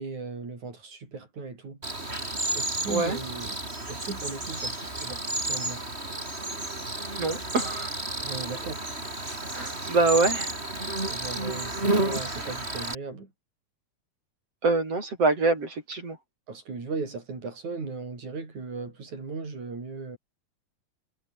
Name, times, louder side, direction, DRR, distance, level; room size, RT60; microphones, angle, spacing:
voice 1, 0.0-1.8 2.5-3.6 3.9-5.8 8.2-8.8 11.1-13.3 16.5-20.2, right 4 dB, 75° right, 7.3 m, -37 dB
Cricket, 1.8-13.0, right 2 dB, 20° right, 5.8 m, -31 dB
voice 2, 2.9-3.2 7.2-8.0 9.5-10.5 14.6-16.2, right 3 dB, 55° right, 6.7 m, -25 dB
omnidirectional pair, 3.4 m